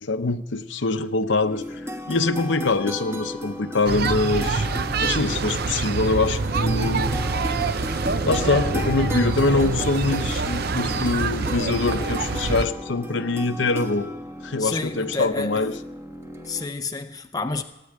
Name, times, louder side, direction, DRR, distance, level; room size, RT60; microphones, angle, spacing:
voice 1, 0.0-4.7 5.0-7.1 8.2-14.1 14.4-15.7, left 3 dB, 60° left, 0.8 m, -24 dB
sound 1, 1.4-16.7, left 1 dB, 10° right, 1.2 m, -34 dB
sound 2, 3.9-12.7, right 4 dB, 50° right, 0.6 m, -25 dB
voice 2, 14.6-15.6 16.5-17.6, left 3 dB, 20° left, 0.6 m, -29 dB
17.0 x 9.3 x 8.7 m
head